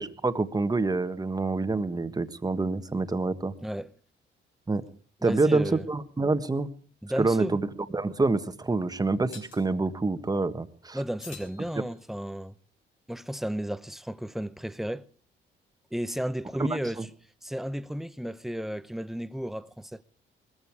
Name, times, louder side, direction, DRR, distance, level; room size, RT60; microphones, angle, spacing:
voice 1, 0.0-3.5 4.7-4.8 5.2-6.7 7.2-7.7 7.9-11.0 16.6-16.7 17.0-17.1, right 3 dB, 20° right, 1.4 m, -26 dB
voice 2, 5.2-5.9 7.0-7.6 10.9-12.5 13.1-15.0 15.9-17.0 17.4-20.0, equal, ahead, 0.7 m, -33 dB
sound 1, 9.3-9.7 11.2-12.3, left 6 dB, 85° left, 5.4 m, -48 dB
20.5 x 14.5 x 4.7 m
cardioid pair, 90°, 20 cm